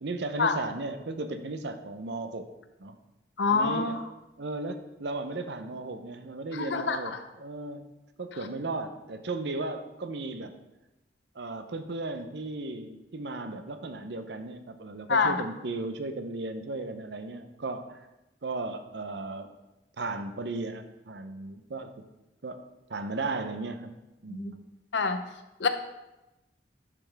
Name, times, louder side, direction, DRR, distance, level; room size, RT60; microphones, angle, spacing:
voice 1, 0.0-2.5 2.8-3.0 3.5-4.0 4.4-7.9 8.2-10.5 11.3-18.0 18.4-19.5 20.0-22.1 22.4-22.6 22.9-24.0 24.2-24.6, right 2 dB, 70° right, 8 dB, 0.7 m, -35 dB
voice 2, 3.4-4.0 6.5-7.2 8.4-8.5 15.1-15.4 24.3-24.5 24.9-25.2 25.6-25.7, left 4 dB, 75° left, 8 dB, 0.7 m, -26 dB
11.0 x 5.8 x 3.4 m, 0.97 s
head